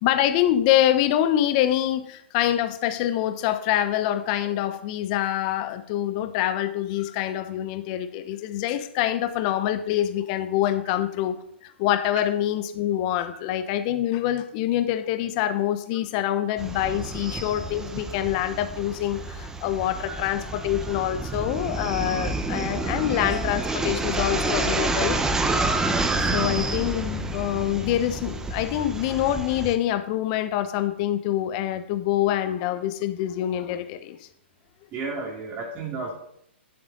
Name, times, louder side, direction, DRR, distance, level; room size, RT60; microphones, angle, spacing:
voice 1, 0.0-25.2 26.2-34.3, left 12 dB, 40° left, 10 dB, 1.0 m, -25 dB
sound 1, 16.6-29.8, right 2 dB, 10° right, 1.0 m, -29 dB
voice 2, 34.9-36.1, right 3 dB, 25° right, -1 dB, 2.4 m, -32 dB
11.0 x 10.5 x 3.9 m, 0.70 s
hypercardioid pair, 130°, 6 cm